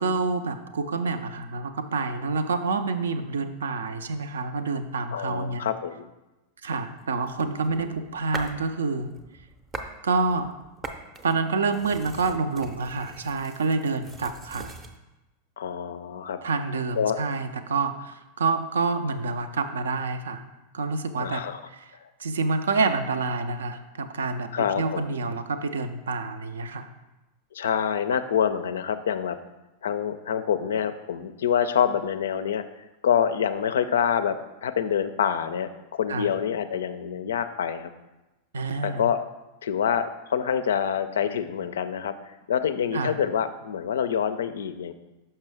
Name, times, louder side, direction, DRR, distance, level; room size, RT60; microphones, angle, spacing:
voice 1, 0.0-5.6 6.6-9.1 10.0-10.5 11.2-14.7 16.4-20.4 20.7-21.9 22.2-26.9 36.1-36.3 38.5-39.1 42.9-43.2, right 4 dB, 65° right, 9 dB, 0.4 m, -28 dB
voice 2, 5.1-6.1 7.4-7.9 15.6-16.4 17.0-17.2 21.2-21.6 22.0-22.1 24.5-25.1 27.5-29.4 29.8-32.6 33.0-37.9 38.8-39.2 39.6-44.9, left 8 dB, 65° left, 11 dB, 0.3 m, -26 dB
sound 1, 7.3-8.7 9.1-10.0 10.3-15.0, right 3 dB, 20° right, 0.6 m, -41 dB
5.9 x 5.5 x 3.3 m, 1.0 s
figure-of-eight pair, 90°, 0 cm